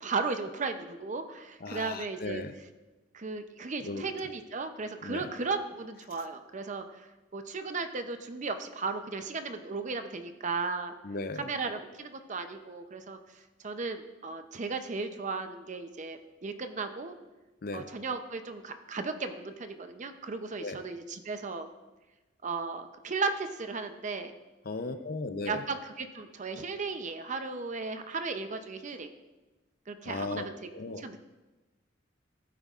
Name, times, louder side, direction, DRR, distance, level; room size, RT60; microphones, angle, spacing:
voice 1, 0.0-2.4 3.1-10.9 11.4-13.2 13.6-17.1 17.7-21.7 22.4-24.3 25.5-29.1 29.9-30.7 31.0-31.2, right 4 dB, 40° right, 8 dB, 0.6 m, -35 dB
voice 2, 1.6-2.5 3.8-4.0 5.0-5.3 11.0-11.5 17.6-17.9 20.6-20.8 24.6-25.6 30.0-30.5 30.7-31.1, left 3 dB, 50° left, 9 dB, 0.6 m, -36 dB
15.0 x 9.0 x 2.4 m, 1.1 s
head